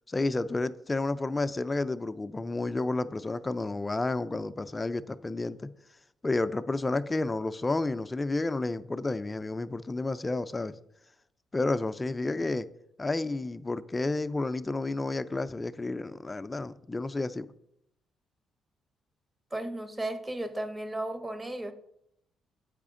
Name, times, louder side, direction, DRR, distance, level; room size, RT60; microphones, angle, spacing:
voice 1, 0.1-5.7 6.2-10.7 11.5-12.7 13.0-17.5, left 2 dB, 20° left, 0.4 m, -31 dB
voice 2, 19.5-21.7, right 1 dB, 15° right, 0.8 m, -34 dB
8.2 x 5.0 x 3.7 m
cardioid pair, 90°, 0 cm